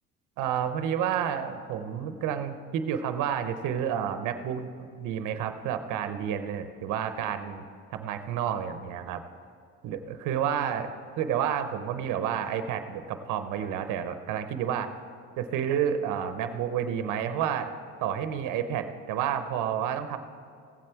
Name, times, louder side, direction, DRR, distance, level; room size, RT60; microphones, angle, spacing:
voice 1, 0.4-4.7 5.0-7.6 7.9-9.2 9.8-10.9 11.2-14.9 15.4-17.7 18.0-20.2, right 9 dB, 80° right, 9 dB, 0.9 m, -30 dB
16.0 x 7.7 x 4.5 m, 2.4 s
cardioid pair, 95°, 31 cm